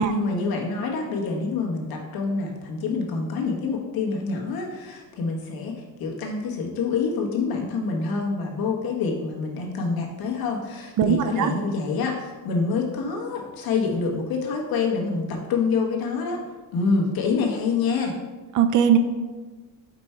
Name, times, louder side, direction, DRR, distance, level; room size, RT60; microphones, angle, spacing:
voice 1, 0.0-16.4 16.7-18.2, left 4 dB, 55° left, 0 dB, 1.3 m, -26 dB
voice 2, 11.0-11.5 18.5-19.0, right 8 dB, 45° right, 9 dB, 0.5 m, -19 dB
5.2 x 4.6 x 4.4 m, 1.3 s
cardioid pair, 125°, 42 cm